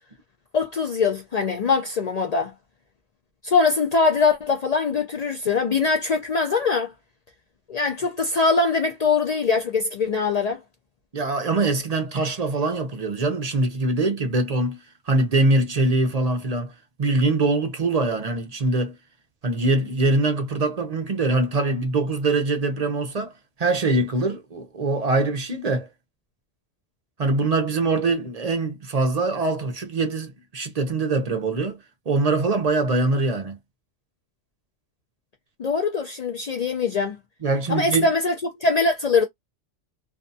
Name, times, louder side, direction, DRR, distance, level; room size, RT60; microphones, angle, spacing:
voice 1, 0.5-2.5 3.4-6.9 7.7-10.6 35.6-37.2 37.7-39.3, left 4 dB, 70° left, 0.3 m, -22 dB
voice 2, 11.1-14.8 15.1-16.7 17.0-19.0 19.4-23.3 23.6-25.9 27.2-31.8 32.1-33.6 37.4-38.1, right 3 dB, 45° right, 0.5 m, -23 dB
2.6 x 2.3 x 2.5 m
omnidirectional pair, 1.3 m